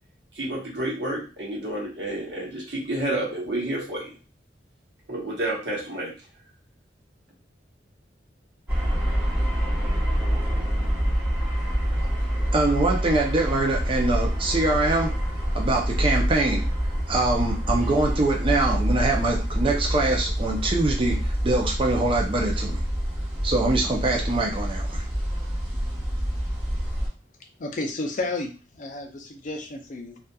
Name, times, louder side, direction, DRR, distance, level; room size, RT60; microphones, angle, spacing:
voice 1, 0.3-4.2 5.1-6.1, right 1 dB, 75° right, -2 dB, 1.0 m, -30 dB
sound 1, 8.7-27.1, equal, 10° right, 0.9 m, -26 dB
voice 2, 12.5-15.1 15.5-16.7 17.1-22.8 23.4-25.0, right 2 dB, 30° right, 0 dB, 0.4 m, -24 dB
voice 3, 27.6-30.2, left 2 dB, 45° left, 3 dB, 0.5 m, -32 dB
2.8 x 2.3 x 2.2 m, 0.33 s
head